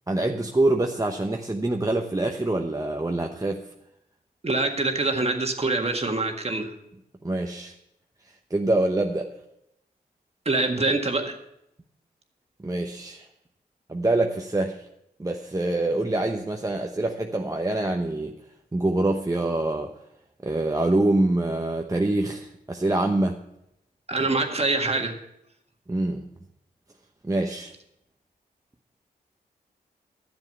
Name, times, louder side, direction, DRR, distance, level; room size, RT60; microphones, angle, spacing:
voice 1, 0.1-3.6 7.2-7.7 8.5-9.3 12.6-13.3 13.9-14.9 15.2-18.3 18.7-19.9 20.4-23.4 25.9-26.2 27.2-27.7, right 2 dB, 20° right, 2 dB, 0.9 m, -25 dB
voice 2, 4.4-6.7 10.5-11.4 24.1-25.2, right 2 dB, 35° right, 4 dB, 1.8 m, -25 dB
11.0 x 7.3 x 6.6 m, 0.81 s
cardioid pair, 45°, 17 cm